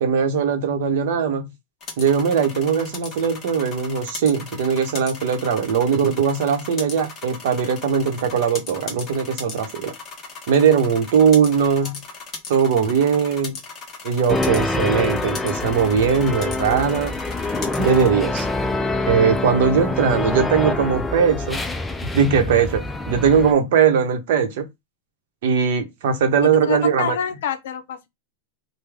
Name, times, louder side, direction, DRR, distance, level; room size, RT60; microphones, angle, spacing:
voice 1, 0.0-1.5 2.0-9.9 10.5-12.0 12.5-13.6 14.0-17.1 17.8-18.5 19.1-21.6 22.1-24.7 25.4-27.1, right 6 dB, 65° right, 0.9 m, -20 dB
sound 1, 1.8-18.1, left 4 dB, 25° left, 1.0 m, -37 dB
sound 2, 14.3-23.5, left 2 dB, 5° left, 0.3 m, -25 dB
voice 2, 26.6-28.1, left 8 dB, 75° left, 0.6 m, -27 dB
3.3 x 2.2 x 3.5 m
supercardioid pair, 160°, 0 cm